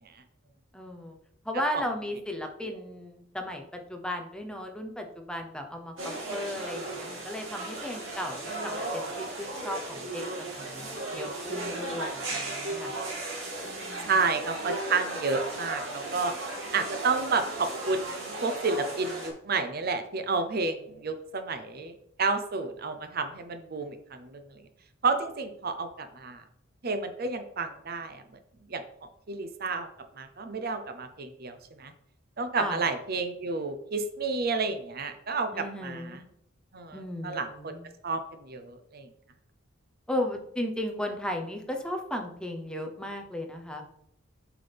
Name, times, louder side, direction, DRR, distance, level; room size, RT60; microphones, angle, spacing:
voice 1, 0.7-1.2 1.4-3.6 3.9-13.0 13.6-14.1 32.6-32.8 35.5-36.2 36.9-37.9 40.1-43.8, left 1 dB, 5° left, 3 dB, 0.8 m, -35 dB
sound 1, 6.0-19.3, right 2 dB, 85° right, 2.5 m, -36 dB
voice 2, 14.1-16.3 16.7-24.6 25.0-26.4 26.8-28.2 28.7-29.9 30.2-31.9 32.4-36.2 36.7-37.8 38.0-39.1, right 4 dB, 50° right, 8 dB, 0.7 m, -31 dB
7.7 x 5.9 x 3.5 m, 0.73 s
head